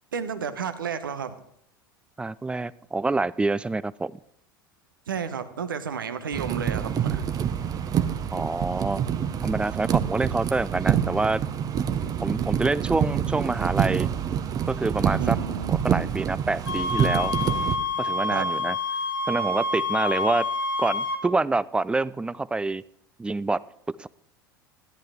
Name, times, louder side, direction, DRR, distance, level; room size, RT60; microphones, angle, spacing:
voice 1, 0.1-1.3 5.1-7.2 15.2-15.7 18.3-18.5, right 6 dB, 75° right, 11 dB, 0.9 m, -32 dB
voice 2, 2.2-4.2 8.3-9.0 9.4-11.4 12.2-14.1 14.7-15.4 15.7-17.3 18.0-18.8 19.3-20.5 20.8-22.8 23.2-23.6 23.9-24.1, right 3 dB, 10° right, 20 dB, 0.3 m, -26 dB
sound 1, 6.3-17.8, right 9 dB, 35° right, 0.8 m, -26 dB
sound 2, 16.7-21.2, left 2 dB, 85° left, 1.8 m, -28 dB
14.0 x 10.5 x 3.6 m, 0.71 s
figure-of-eight pair, 75°, 11 cm